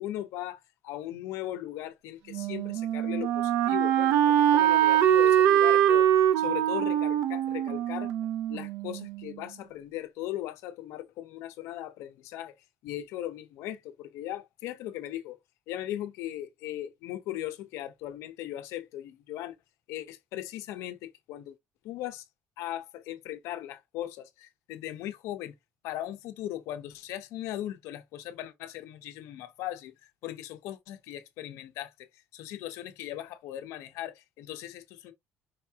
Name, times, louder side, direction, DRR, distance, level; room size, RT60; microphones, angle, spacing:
voice 1, 0.0-6.1 6.4-8.1 8.5-12.5 12.8-15.4 15.7-19.5 19.9-21.5 21.8-22.2 22.6-25.5 25.8-29.9 30.2-31.9 32.3-35.1, left 13 dB, 80° left, 1.0 m, -38 dB
Wind instrument woodwind instrument, 2.3-9.2, right 11 dB, 80° right, 0.6 m, -23 dB
5.2 x 3.5 x 2.9 m
cardioid pair, 175°, 5 cm